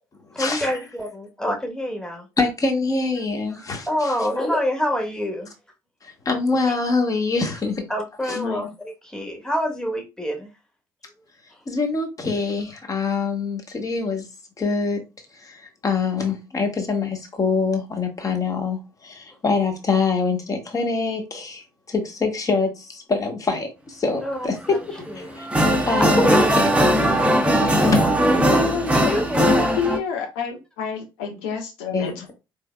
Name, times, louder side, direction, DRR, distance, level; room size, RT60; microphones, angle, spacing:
voice 1, 0.3-2.3 3.5-5.5 7.9-10.5 11.5-11.6 24.2-24.8 25.1-25.3 26.0-29.8, equal, 5° left, 1.5 m, -27 dB
voice 2, 2.4-3.9 6.0-7.9 8.3-8.4 11.7-14.2 14.6-15.0 15.4-24.6 24.9-25.5 25.9-26.7 27.6-28.0 31.9-32.1, left 4 dB, 30° left, 1.4 m, -24 dB
voice 3, 8.3-8.7 28.4-32.3, left 7 dB, 70° left, 1.2 m, -29 dB
sound 1, 24.6-24.7 25.2-30.0, equal, 10° right, 1.0 m, -19 dB
4.5 x 3.4 x 2.3 m
figure-of-eight pair, 50°, 12 cm